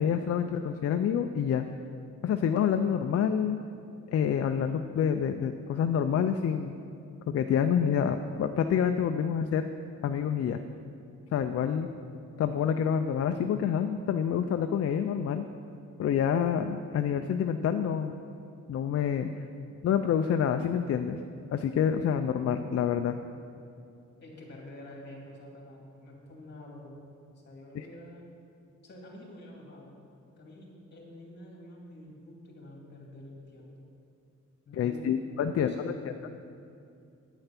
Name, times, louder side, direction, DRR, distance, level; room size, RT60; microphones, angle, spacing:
voice 1, 0.0-1.7 2.2-3.6 4.1-6.7 7.3-9.6 10.0-10.6 11.3-11.9 12.4-15.5 16.0-18.1 18.7-19.3 19.8-21.2 21.5-23.2 27.7-27.9 34.7-35.9, left 8 dB, 50° left, 7 dB, 0.4 m, -27 dB
voice 2, 24.2-27.0 27.4-28.3 28.8-29.9 30.4-33.9 34.7-35.1 35.4-36.2, left 1 dB, 35° left, -2 dB, 2.4 m, -48 dB
10.0 x 9.0 x 5.8 m, 2.6 s
wide cardioid pair, 180°, 30 cm